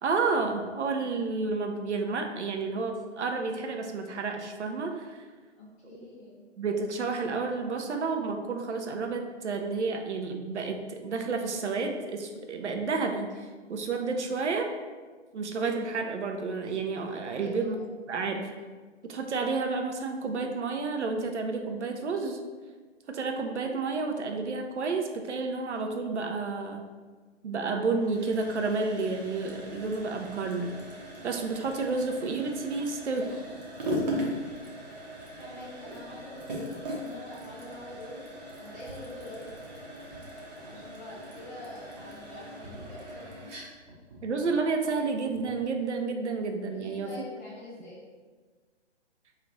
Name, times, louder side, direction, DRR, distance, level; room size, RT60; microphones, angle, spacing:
voice 1, 0.0-5.2 6.6-14.7 15.3-17.8 18.1-18.5 19.1-22.4 23.1-26.9 27.4-30.8 31.2-33.4 44.2-47.1, right 4 dB, 75° right, 4 dB, 0.6 m, -30 dB
voice 2, 5.6-6.4 17.2-17.9 35.4-38.2 38.6-39.5 40.6-43.3 46.7-48.0, left 1 dB, 15° left, -8 dB, 0.5 m, -45 dB
sound 1, 28.0-45.7, equal, 40° right, 0.8 m, -39 dB
3.1 x 2.4 x 3.7 m, 1.4 s
figure-of-eight pair, 130°, 35 cm